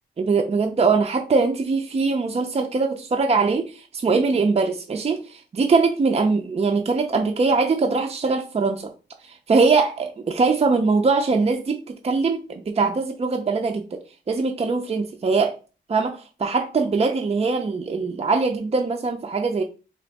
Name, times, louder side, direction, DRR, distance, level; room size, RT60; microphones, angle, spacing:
voice 1, 0.2-8.9 9.2-14.0 14.3-15.6 15.9-19.6, right 4 dB, 30° right, 0.4 m, -22 dB
3.3 x 2.7 x 3.9 m
wide cardioid pair, 105°, 20 cm